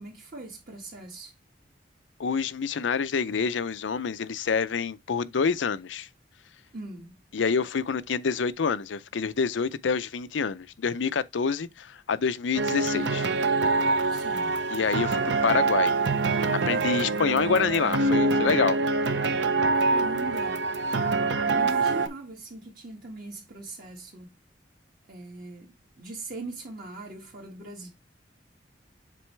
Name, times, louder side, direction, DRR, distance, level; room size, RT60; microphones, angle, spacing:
voice 1, 0.0-1.3 6.7-7.2 14.1-14.6 19.7-20.6 21.4-24.3 25.1-27.9, right 2 dB, 50° right, 1.8 m, -41 dB
voice 2, 2.2-6.1 7.3-13.3 14.7-15.9 16.7-18.8, left 5 dB, 85° left, 0.5 m, -27 dB
sound 1, 12.5-22.1, right 3 dB, 70° right, 0.7 m, -25 dB
7.6 x 4.1 x 3.2 m
head